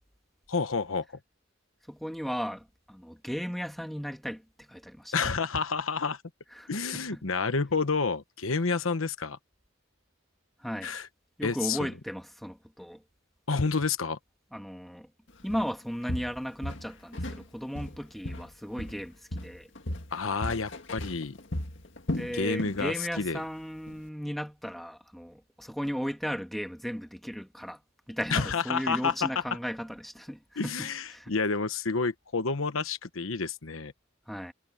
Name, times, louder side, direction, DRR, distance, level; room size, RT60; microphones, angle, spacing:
voice 1, 0.5-1.1 5.1-6.2 6.7-9.4 10.8-11.1 11.4-11.9 13.5-14.2 20.1-21.4 22.3-23.4 28.3-29.4 30.6-33.9, left 4 dB, 85° left, 1.1 m, -29 dB
voice 2, 1.9-5.1 6.6-7.2 10.6-10.9 11.4-13.0 14.5-15.1 15.4-19.7 22.1-27.8 28.1-31.3 34.3-34.5, equal, ahead, 1.9 m, -36 dB
Walk footsteps, 15.5-15.7 16.1-17.5 17.8-19.1 19.3-22.8 23.1-23.4 23.9-24.0, left 1 dB, 65° left, 2.0 m, -36 dB
head